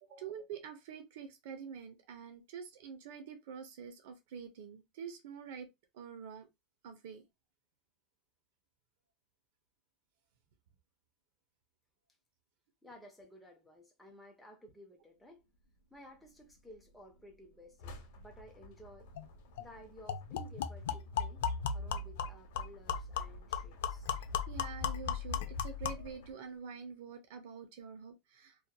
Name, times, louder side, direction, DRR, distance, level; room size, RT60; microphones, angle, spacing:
voice 1, 0.0-5.7 5.9-6.5 6.8-7.2 24.2-28.7, right 6 dB, 65° right, 0.6 m, -47 dB
voice 2, 12.8-15.4 15.9-19.1 19.6-24.2, equal, ahead, 0.5 m, -56 dB
sound 1, 15.3-26.3, left 1 dB, 65° left, 0.8 m, -56 dB
sound 2, 19.2-19.3 19.6-19.7 20.1-26.1, left 7 dB, 90° left, 0.4 m, -37 dB
2.8 x 2.3 x 2.2 m
supercardioid pair, 165°, 0 cm